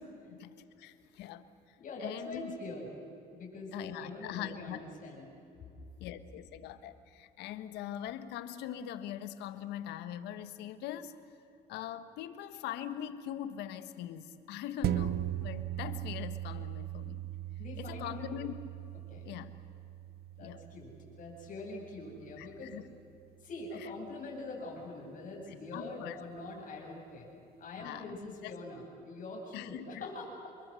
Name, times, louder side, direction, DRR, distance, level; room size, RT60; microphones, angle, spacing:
voice 1, 0.3-1.4 2.0-2.6 3.7-4.8 6.0-11.1 11.7-17.2 17.8-18.5 19.2-19.5 20.4-20.6 22.4-22.8 25.7-26.2 27.8-28.1 28.4-28.5 29.5-30.1, left 11 dB, 90° left, 11 dB, 1.5 m, -42 dB
voice 2, 1.8-2.9 3.3-5.2 17.6-18.1 19.1-19.3 20.4-20.9 21.2-22.8 23.4-27.3 27.6-30.5, left 2 dB, 55° left, -1 dB, 8.0 m, -44 dB
sound 1, 14.8-23.6 24.1-24.2, right 13 dB, 70° right, 0.8 m, -39 dB
28.5 x 22.5 x 7.8 m, 2.7 s
cardioid pair, 110°, 17 cm